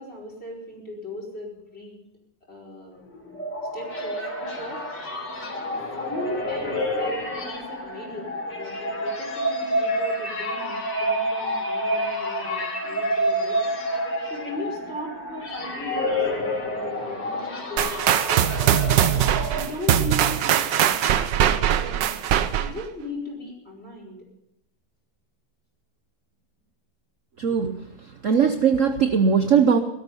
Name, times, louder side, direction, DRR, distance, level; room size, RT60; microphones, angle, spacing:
voice 1, 0.0-2.0 2.5-3.0 3.7-4.8 5.7-13.8 14.3-18.9 19.5-21.0 21.3-22.2 22.6-24.2, left 1 dB, 35° left, -1 dB, 5.4 m, -37 dB
sound 1, 3.1-20.1, equal, 65° left, 4.1 m, -29 dB
sound 2, 17.8-22.8, right 10 dB, 75° right, 1.5 m, -21 dB
voice 2, 27.4-27.8 28.2-29.8, right 6 dB, 55° right, 8 dB, 1.0 m, -19 dB
17.5 x 13.5 x 5.4 m, 0.84 s
omnidirectional pair, 2.0 m